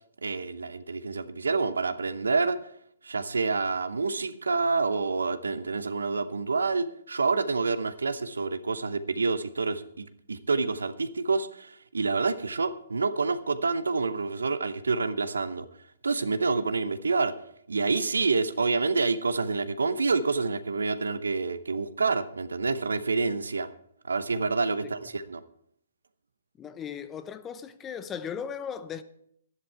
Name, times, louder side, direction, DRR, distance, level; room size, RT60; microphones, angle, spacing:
voice 1, 0.2-2.6 3.0-15.7 16.0-17.4 17.7-23.7 24.1-25.4, right 4 dB, 80° right, 0.8 m, -28 dB
voice 2, 26.6-29.0, left 7 dB, 20° left, 0.7 m, -37 dB
11.0 x 11.0 x 4.6 m
figure-of-eight pair, 130°, 0 cm